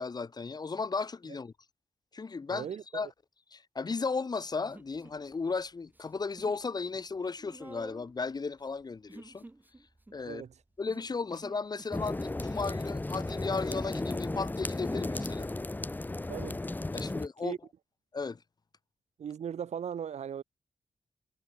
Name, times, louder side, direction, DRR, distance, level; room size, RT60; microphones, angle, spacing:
voice 1, 0.0-1.5 2.1-2.7 2.9-3.1 3.5-9.4 10.1-10.4 10.8-15.5 16.9-17.5 18.1-18.4, left 4 dB, 35° left, 1.2 m, -35 dB
voice 2, 2.5-3.0 10.2-10.5 16.3-16.6 17.4-17.6 19.2-20.4, right 8 dB, 80° right, 4.6 m, -38 dB
Human voice, 4.7-5.6 5.9-6.6 6.9-12.1, right 2 dB, 15° right, 2.2 m, -52 dB
sound 1, 11.9-17.3, left 2 dB, 15° left, 1.1 m, -34 dB
cardioid pair, 95°, 11 cm